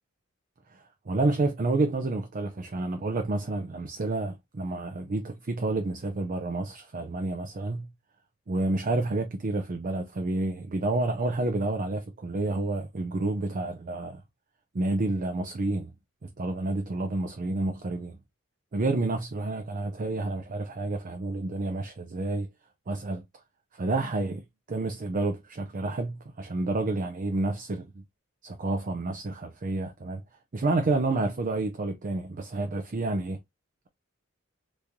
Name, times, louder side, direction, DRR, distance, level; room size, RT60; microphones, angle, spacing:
voice 1, 0.7-7.9 8.5-14.2 14.7-15.9 16.4-18.2 18.7-22.5 22.9-23.2 23.7-24.4 24.7-27.9 28.4-30.2 30.5-33.4, right 2 dB, 40° right, 0.5 m, -29 dB
3.5 x 3.1 x 2.5 m
head